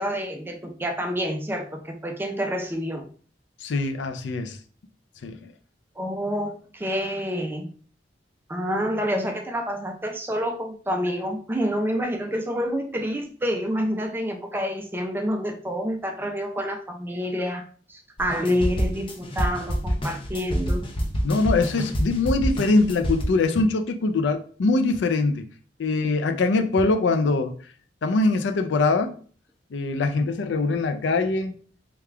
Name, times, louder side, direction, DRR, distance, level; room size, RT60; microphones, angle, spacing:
voice 1, 0.0-3.1 6.0-7.7 8.5-17.6 17.9-20.8, equal, 10° right, 0.4 m, -28 dB
voice 2, 3.6-4.6 5.2-5.4 21.2-25.5 25.8-27.5 28.0-29.1 29.7-31.5, left 3 dB, 80° left, 0.4 m, -23 dB
sound 1, 18.2-23.2, equal, 30° left, 0.6 m, -27 dB
3.4 x 2.3 x 3.3 m
head